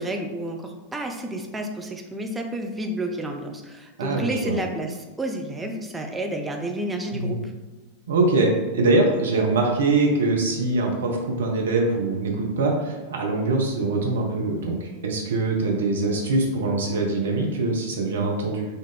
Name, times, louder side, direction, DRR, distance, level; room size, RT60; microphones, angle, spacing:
voice 1, 0.0-7.4, right 1 dB, 10° right, 2 dB, 0.4 m, -30 dB
voice 2, 4.0-4.6 7.1-7.4 8.1-18.6, right 2 dB, 65° right, 0 dB, 0.6 m, -23 dB
4.2 x 2.5 x 3.3 m, 1.2 s
figure-of-eight pair, 90°, 0 cm